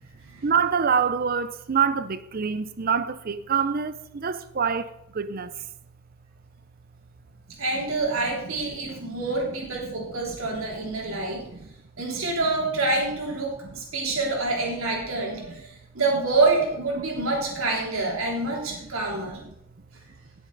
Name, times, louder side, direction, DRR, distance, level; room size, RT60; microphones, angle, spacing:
voice 1, 0.4-5.5 9.0-9.2 9.8-10.1 10.5-11.7 19.3-19.4, right 6 dB, 45° right, 0.5 m, -26 dB
voice 2, 7.6-11.5 12.0-19.4, right 3 dB, 70° right, 3.2 m, -27 dB
17.5 x 7.0 x 3.9 m
head